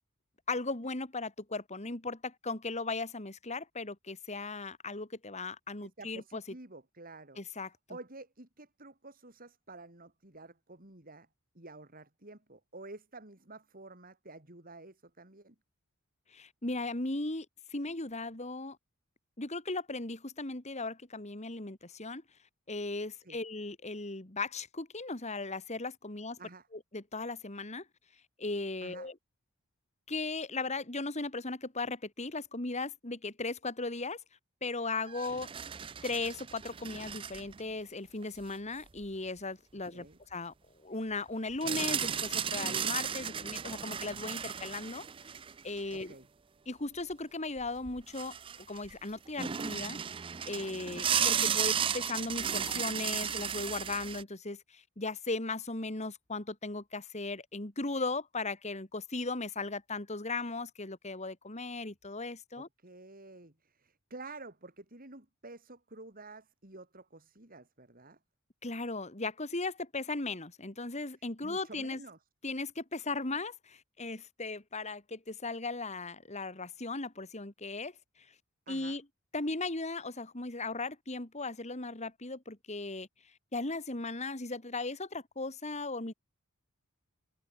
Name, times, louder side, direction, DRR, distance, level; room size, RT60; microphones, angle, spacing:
voice 1, 0.5-6.4 7.4-7.7 16.3-17.5 17.7-18.8 19.4-22.2 22.7-26.4 26.9-27.8 28.4-29.1 30.1-34.2 34.6-35.5 36.0-40.5 40.8-45.0 45.6-46.2 46.7-48.4 48.7-50.0 50.5-62.7 68.6-72.0 72.4-77.9 78.7-79.0 79.3-83.1 83.5-86.1, left 3 dB, 30° left, 2.2 m, -37 dB
voice 2, 5.8-7.4 7.9-11.3 11.5-15.6 23.2-23.4 26.4-26.7 28.8-29.1 39.9-40.2 45.9-46.3 62.6-68.2 71.4-72.2 78.7-79.0, right 2 dB, 40° right, 3.8 m, -50 dB
sound 1, 35.1-37.6 38.2-38.3 41.6-46.0 47.6-47.7 47.9-48.9 49.4-54.2, right 8 dB, 25° right, 0.4 m, -34 dB
head